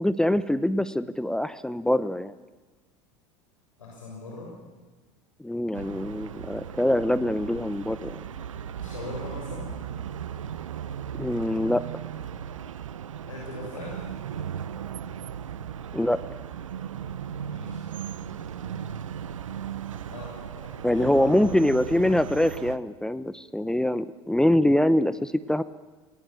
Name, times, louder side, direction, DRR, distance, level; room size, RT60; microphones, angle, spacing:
voice 1, 0.0-2.3 5.4-8.2 11.2-11.8 15.9-16.2 20.8-25.6, left 1 dB, 5° left, 14 dB, 0.9 m, -24 dB
voice 2, 3.8-4.5 8.7-9.8 13.3-14.0 17.3-17.9 20.1-21.4, left 2 dB, 90° left, -3 dB, 7.4 m, -40 dB
Chinatown Sidewalk noisy, 5.7-22.8, right 8 dB, 85° right, 1.0 m, -37 dB
28.5 x 19.5 x 9.1 m, 1.3 s
hypercardioid pair, 85°, 16 cm